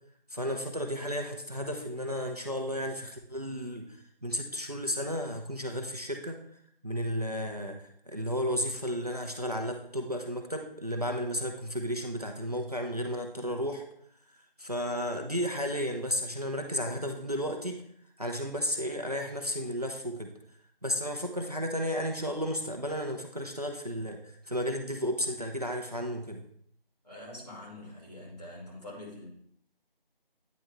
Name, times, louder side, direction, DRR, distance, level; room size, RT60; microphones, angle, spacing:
voice 1, 0.3-6.4 6.8-13.9 14.6-17.8 18.2-20.3 20.8-26.4, equal, 40° right, 3 dB, 0.7 m, -33 dB
voice 2, 27.0-29.3, left 1 dB, 40° left, -4 dB, 2.6 m, -45 dB
9.2 x 3.5 x 4.3 m, 0.67 s
figure-of-eight pair, 175°, 30 cm